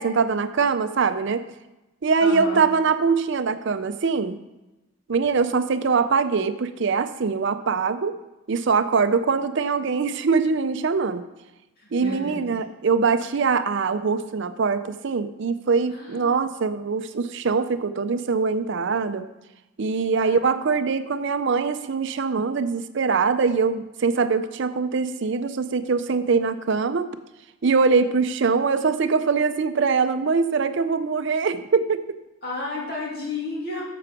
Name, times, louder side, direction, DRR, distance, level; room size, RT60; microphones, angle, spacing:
voice 1, 0.0-1.4 2.0-4.4 5.1-8.1 8.5-11.2 11.9-19.3 19.8-27.1 27.6-32.0, right 5 dB, 55° right, 10 dB, 0.5 m, -23 dB
voice 2, 2.2-2.6 11.8-12.5 15.9-16.2 20.2-20.4 32.4-33.8, left 2 dB, 45° left, -4 dB, 2.7 m, -32 dB
8.5 x 6.9 x 5.9 m, 0.99 s
head